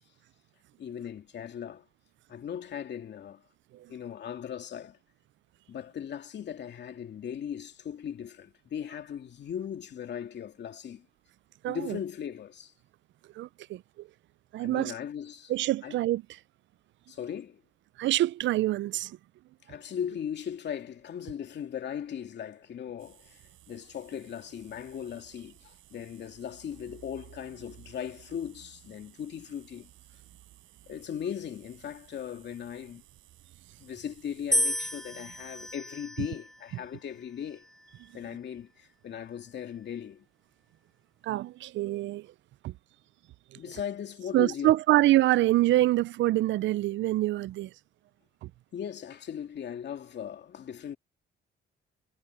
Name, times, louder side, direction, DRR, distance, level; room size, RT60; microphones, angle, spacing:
voice 1, 0.8-1.8 2.3-3.4 3.9-5.0 5.7-11.1 11.7-12.7 14.6-15.5 15.8-16.0 17.1-17.6 19.7-29.9 30.9-33.0 33.8-37.7 38.1-40.3 43.5-44.8 48.7-51.0, left 8 dB, 60° left, 2.7 m, -38 dB
voice 2, 11.6-12.0 13.4-14.1 14.5-14.9 15.5-16.2 18.0-19.2 41.2-42.3 42.6-42.7 44.3-47.7 48.4-48.5, right 15 dB, 70° right, 0.4 m, -25 dB
sound 1, 23.0-35.8, right 15 dB, 90° right, 4.7 m, -56 dB
sound 2, 34.5-36.7 37.5-38.1, equal, ahead, 0.4 m, -32 dB
cardioid pair, 90°, 20 cm